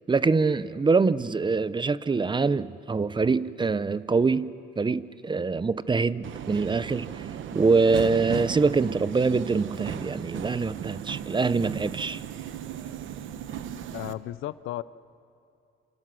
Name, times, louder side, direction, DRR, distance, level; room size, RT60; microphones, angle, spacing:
voice 1, 0.1-4.5 4.8-7.2 7.5-12.2, right 4 dB, 25° right, 0.7 m, -24 dB
Subway metro underground, 6.2-14.1, right 9 dB, 75° right, 1.1 m, -36 dB
voice 2, 13.9-14.8, left 14 dB, 85° left, 0.6 m, -34 dB
28.0 x 27.0 x 6.2 m
cardioid pair, 90°, 20 cm